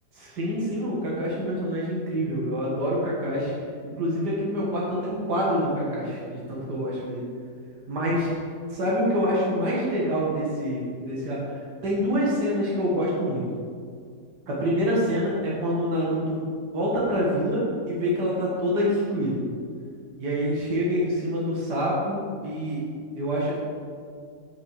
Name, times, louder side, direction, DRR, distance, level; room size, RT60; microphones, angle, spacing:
voice 1, 0.2-3.5 3.8-7.3 7.9-8.3 8.7-11.6 11.8-13.5 14.5-16.4 16.7-19.5 20.2-22.8 23.2-23.5, equal, 85° right, -6 dB, 2.2 m, -26 dB
6.5 x 5.9 x 6.6 m, 2.1 s
omnidirectional pair, 1.7 m